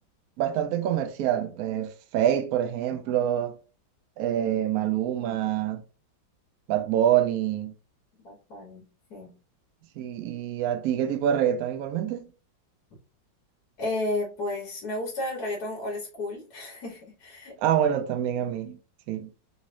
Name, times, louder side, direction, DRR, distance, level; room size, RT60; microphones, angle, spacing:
voice 1, 0.4-3.6 4.2-5.8 6.7-7.7 10.0-12.3 17.6-18.8 19.1-19.3, right 10 dB, 75° right, 0.8 m, -26 dB
voice 2, 8.2-8.8 9.1-9.3 13.8-17.5, left 1 dB, 60° left, 1.6 m, -33 dB
4.0 x 3.1 x 2.5 m
omnidirectional pair, 2.0 m